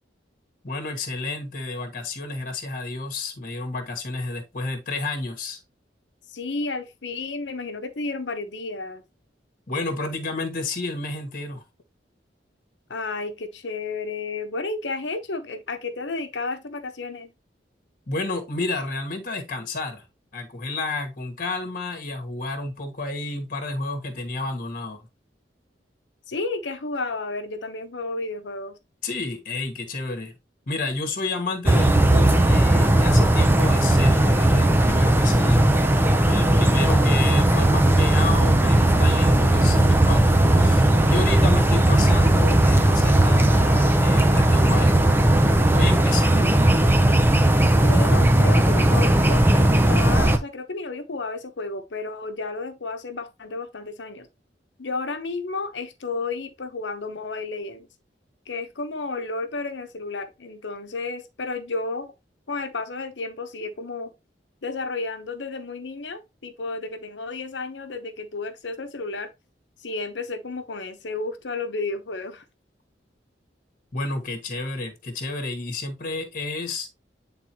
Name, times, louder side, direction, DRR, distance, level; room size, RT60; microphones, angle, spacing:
voice 1, 0.6-5.6 9.7-11.6 18.1-20.0 20.3-25.0 29.0-30.3 30.7-35.8 36.2-45.0 45.7-46.8 73.9-76.9, left 3 dB, 50° left, 1.4 m, -31 dB
voice 2, 6.3-9.0 12.9-17.3 26.3-28.8 47.8-54.3 54.8-57.9 58.5-62.1 62.5-64.1 64.6-69.3 69.8-72.4, left 3 dB, 85° left, 1.0 m, -32 dB
sound 1, 31.7-50.4, right 1 dB, 15° right, 0.6 m, -17 dB
8.7 x 3.8 x 2.9 m
head